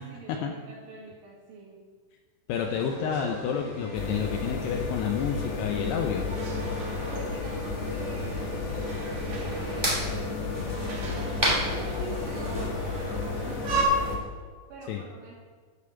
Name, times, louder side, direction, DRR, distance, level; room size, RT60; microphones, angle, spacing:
voice 1, 0.0-1.8 7.1-8.4 9.2-10.2 11.0-14.2 14.7-15.3, right 3 dB, 80° right, -8 dB, 4.4 m, -45 dB
voice 2, 2.5-6.3 14.9-15.0, left 7 dB, 85° left, 3 dB, 2.3 m, -30 dB
sound 1, 2.5-13.8, right 3 dB, 55° right, 2.1 m, -38 dB
sound 2, 3.9-14.2, left 4 dB, 65° left, 3.1 m, -32 dB
sound 3, 7.5-12.7, right 1 dB, 35° right, 0.4 m, -34 dB
12.5 x 5.1 x 6.9 m, 1.5 s
omnidirectional pair, 5.5 m